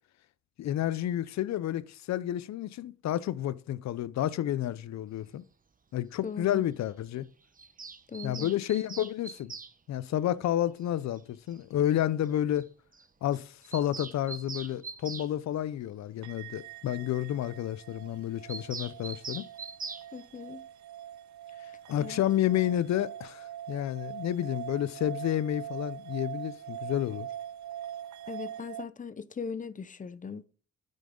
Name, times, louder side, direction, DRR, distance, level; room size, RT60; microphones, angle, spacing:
voice 1, 0.6-5.4 5.9-7.3 8.2-9.5 9.9-12.7 13.2-19.4 21.9-27.3, left 12 dB, 65° left, 0.6 m, -30 dB
voice 2, 6.2-6.6 8.1-8.5 20.1-20.7 22.0-22.2 28.3-30.4, left 5 dB, 25° left, 0.7 m, -39 dB
Bird vocalization bird call bird song, 7.6-9.7 11.2-11.3 11.5-11.6 11.8-11.9 12.2-12.3 12.6-12.7 12.9-13.1 13.3-15.3 18.5-20.1, right 5 dB, 25° right, 1.0 m, -42 dB
sound 1, 16.2-28.8, right 11 dB, 70° right, 0.7 m, -43 dB
9.2 x 9.0 x 3.8 m
cardioid pair, 90°, 30 cm